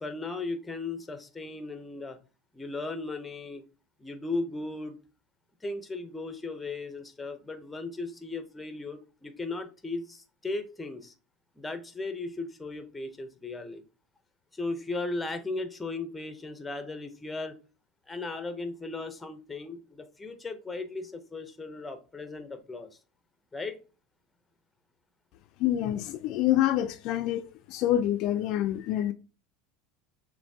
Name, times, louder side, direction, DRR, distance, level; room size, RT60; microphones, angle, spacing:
voice 1, 0.0-2.2 2.5-3.6 4.0-5.0 5.6-11.1 11.6-13.8 14.5-17.6 18.1-22.9 23.5-23.8, left 3 dB, 10° left, 0.6 m, -36 dB
voice 2, 25.6-27.4 27.7-29.1, left 12 dB, 50° left, 0.3 m, -26 dB
6.9 x 2.6 x 2.7 m
supercardioid pair, 145°, 0 cm